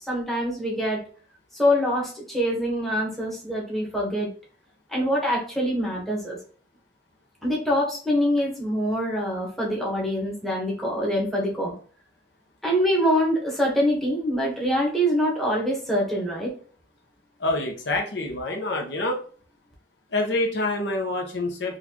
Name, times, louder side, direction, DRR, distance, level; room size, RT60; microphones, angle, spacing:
voice 1, 0.1-1.0 1.5-4.3 4.9-6.4 7.4-11.7 12.6-16.5, equal, ahead, -3 dB, 1.1 m, -24 dB
voice 2, 17.4-19.2 20.1-21.8, left 2 dB, 75° left, 3 dB, 0.8 m, -26 dB
4.1 x 2.5 x 2.9 m, 0.42 s
head